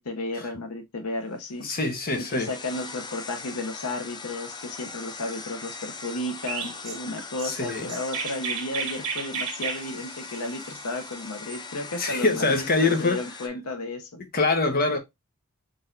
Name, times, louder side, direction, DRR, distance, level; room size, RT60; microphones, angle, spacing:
voice 1, 0.0-1.7 2.3-14.2, left 2 dB, 80° left, 0.8 m, -33 dB
sound 1, 1.4-13.5, left 4 dB, 20° left, 0.5 m, -41 dB
voice 2, 1.6-2.5 7.4-7.9 12.0-13.2 14.3-15.0, left 3 dB, 45° left, 1.0 m, -24 dB
Chirp tweet, 6.5-11.6, right 6 dB, 85° right, 1.3 m, -34 dB
4.0 x 3.5 x 2.6 m
head